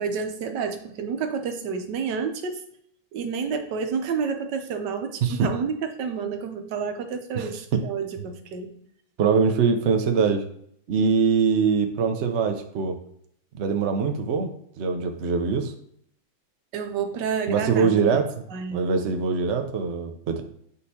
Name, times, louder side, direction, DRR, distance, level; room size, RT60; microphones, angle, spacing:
voice 1, 0.0-2.6 3.1-8.7 16.7-18.2 18.5-18.9, right 6 dB, 65° right, 6 dB, 1.2 m, -29 dB
voice 2, 7.3-7.8 9.2-10.4 10.9-13.0 13.6-14.5 14.8-15.7 17.5-18.4 18.7-20.4, right 5 dB, 90° right, 5 dB, 0.6 m, -23 dB
8.6 x 4.1 x 2.8 m, 0.68 s
omnidirectional pair, 2.2 m